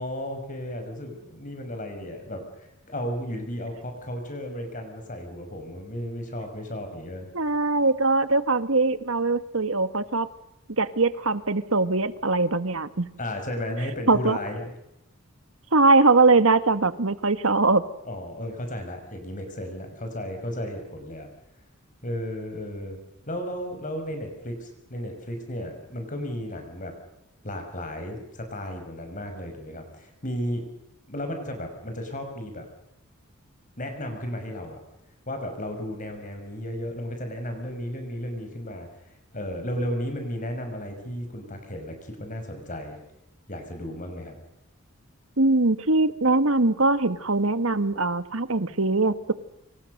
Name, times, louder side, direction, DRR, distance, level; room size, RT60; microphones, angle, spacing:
voice 1, 0.0-7.3 13.2-14.7 18.1-21.3 22.0-23.0 23.3-26.9 27.4-30.7 31.1-32.7 33.8-34.8 35.3-38.9 39.3-43.0 43.5-44.3, equal, 35° left, 5 dB, 5.9 m, -34 dB
voice 2, 7.3-10.3 10.8-13.1 14.1-14.4 15.7-17.8 45.4-49.3, right 3 dB, 70° right, 13 dB, 1.6 m, -21 dB
29.0 x 27.0 x 6.6 m, 0.88 s
head